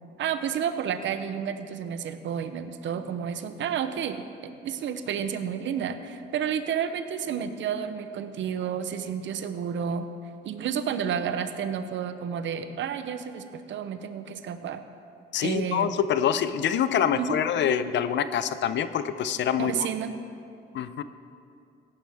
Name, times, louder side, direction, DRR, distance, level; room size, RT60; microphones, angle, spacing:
voice 1, 0.2-10.1 10.4-14.8 15.4-16.0 17.2-17.4 19.6-20.2, right 8 dB, 70° right, 10 dB, 0.8 m, -31 dB
voice 2, 15.3-19.9 20.7-21.0, left 9 dB, 65° left, 12 dB, 0.6 m, -26 dB
16.0 x 11.5 x 3.5 m, 2.5 s
cardioid pair, 90°, 20 cm